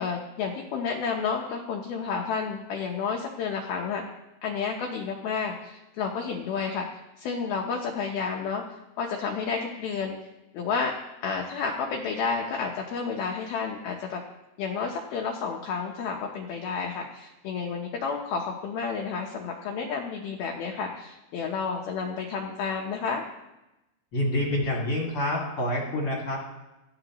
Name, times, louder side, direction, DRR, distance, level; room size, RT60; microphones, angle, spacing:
voice 1, 0.0-4.0 4.4-8.6 9.0-10.1 10.5-10.9 11.2-14.2 14.6-23.2, left 5 dB, 75° left, 1 dB, 2.3 m, -31 dB
voice 2, 24.1-26.4, left 1 dB, 45° left, -3 dB, 2.0 m, -27 dB
17.5 x 13.5 x 3.0 m, 0.98 s
omnidirectional pair, 5.5 m